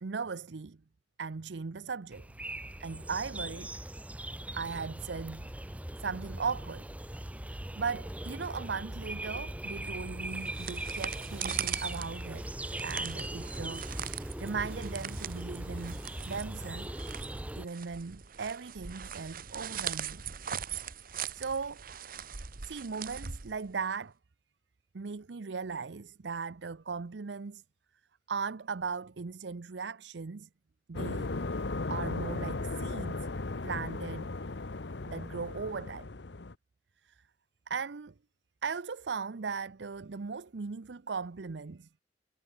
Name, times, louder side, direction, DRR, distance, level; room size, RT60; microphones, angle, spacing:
voice 1, 0.0-0.8 1.2-2.3 2.8-3.7 4.5-5.5 6.0-6.9 7.5-12.5 12.8-16.9 17.6-20.2 21.0-21.8 22.6-24.1 24.9-27.6 28.3-30.5 30.9-31.3 31.9-33.3 33.6-34.4 35.1-36.1 37.0-37.2 37.7-38.1 38.6-41.9, right 5 dB, 70° right, 0.6 m, -38 dB
sound 1, 2.1-17.7, right 1 dB, 10° right, 0.7 m, -40 dB
sound 2, 10.3-24.0, right 8 dB, 55° right, 1.2 m, -41 dB
sound 3, 30.9-36.5, left 3 dB, 70° left, 1.0 m, -36 dB
head